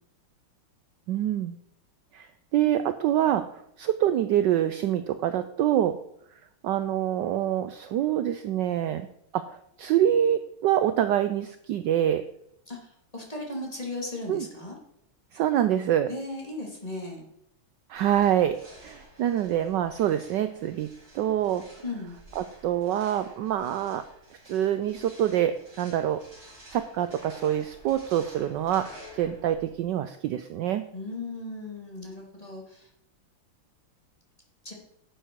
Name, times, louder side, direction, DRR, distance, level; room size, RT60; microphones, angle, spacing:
voice 1, 1.1-1.6 2.1-6.0 6.6-9.1 9.3-12.2 14.3-14.5 15.3-16.1 17.9-20.9 21.1-21.6 22.4-24.0 24.5-26.2 26.7-28.9 29.1-30.8, right 11 dB, 75° right, 11 dB, 1.0 m, -26 dB
voice 2, 12.7-14.8 16.1-17.2 21.8-22.1 30.9-32.9 34.6-34.7, left 2 dB, 15° left, -1 dB, 2.4 m, -36 dB
sound 1, 17.9-29.8, equal, 45° right, 5.0 m, -51 dB
11.0 x 8.2 x 4.6 m, 0.73 s
omnidirectional pair, 2.4 m